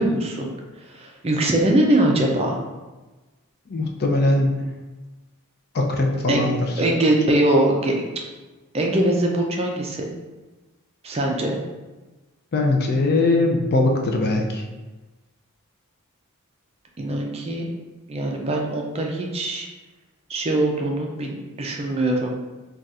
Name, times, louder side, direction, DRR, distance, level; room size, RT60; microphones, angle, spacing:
voice 1, 0.0-2.6 6.3-6.5 6.8-7.9 8.7-10.1 11.0-11.6 17.0-17.6 18.1-19.7 20.3-22.4, right 1 dB, 25° right, 0 dB, 0.4 m, -22 dB
voice 2, 3.7-4.6 5.7-6.6 12.5-14.6, left 2 dB, 45° left, 1 dB, 0.4 m, -21 dB
2.4 x 2.3 x 4.0 m, 1.2 s
head